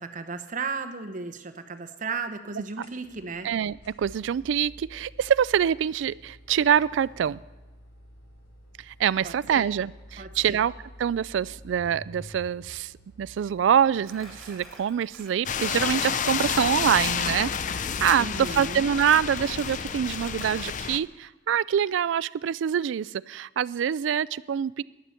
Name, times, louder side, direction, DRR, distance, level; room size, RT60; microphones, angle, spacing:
voice 1, 0.0-3.5 9.2-9.7 10.2-10.6 18.2-18.9, right 4 dB, 45° right, 8 dB, 0.9 m, -35 dB
sound 1, 2.6-15.5, equal, 90° left, 4.1 m, -50 dB
voice 2, 3.4-7.4 8.9-10.7 11.0-12.9 13.2-24.8, right 8 dB, 75° right, 20 dB, 0.3 m, -25 dB
Crumpling crinkling, 14.0-17.0 18.7-20.9, right 1 dB, ahead, 4.5 m, -49 dB
sound 2, 15.5-21.0, left 7 dB, 45° left, 0.4 m, -30 dB
17.0 x 11.5 x 4.3 m, 1.1 s
head